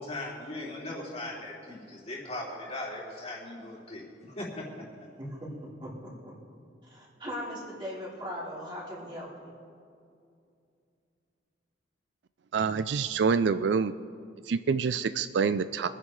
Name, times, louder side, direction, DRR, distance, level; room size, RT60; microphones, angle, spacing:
voice 1, 0.0-4.0 4.4-4.7, left 2 dB, 35° left, -4 dB, 3.0 m, -38 dB
voice 2, 5.2-5.5 5.8-6.3 6.9-9.5, equal, 25° right, -8 dB, 4.0 m, -39 dB
voice 3, 12.5-13.9 14.5-15.9, right 5 dB, 65° right, 13 dB, 0.4 m, -26 dB
25.0 x 10.5 x 3.3 m, 2.4 s
head